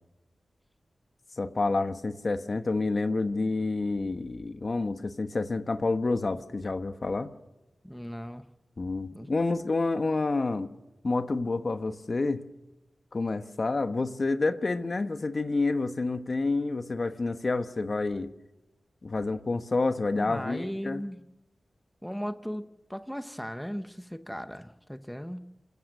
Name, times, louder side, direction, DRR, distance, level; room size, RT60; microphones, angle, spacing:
voice 1, 1.4-7.3 8.8-10.7 11.0-12.4 13.1-18.3 19.0-21.0, left 3 dB, 50° left, 9 dB, 1.2 m, -28 dB
voice 2, 7.8-8.5 9.1-9.3 20.2-21.2 22.0-25.4, equal, 5° left, 9 dB, 1.0 m, -37 dB
27.5 x 15.5 x 6.7 m, 1.0 s
cardioid pair, 60°, 0 cm